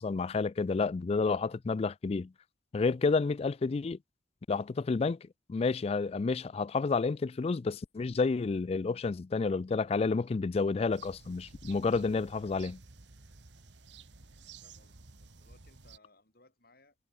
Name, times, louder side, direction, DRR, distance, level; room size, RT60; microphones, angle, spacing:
voice 1, 0.0-2.3 2.7-4.0 4.5-5.2 5.5-12.8, left 4 dB, 35° left, 0.3 m, -30 dB
sound 1, 10.9-16.0, right 4 dB, 90° right, 1.8 m, -53 dB
voice 2, 14.6-17.0, left 2 dB, 60° left, 7.5 m, -64 dB
head